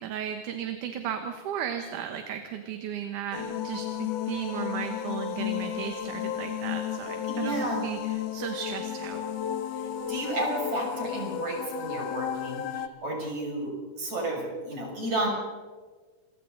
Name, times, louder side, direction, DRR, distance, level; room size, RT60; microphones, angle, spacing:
voice 1, 0.0-9.5, right 9 dB, 80° right, 6 dB, 2.7 m, -35 dB
sound 1, 3.3-12.9, left 10 dB, 65° left, 1.8 m, -33 dB
voice 2, 7.3-7.8 10.1-15.3, right 1 dB, 65° right, -2 dB, 7.6 m, -32 dB
28.0 x 23.5 x 4.0 m, 1.4 s
omnidirectional pair, 3.5 m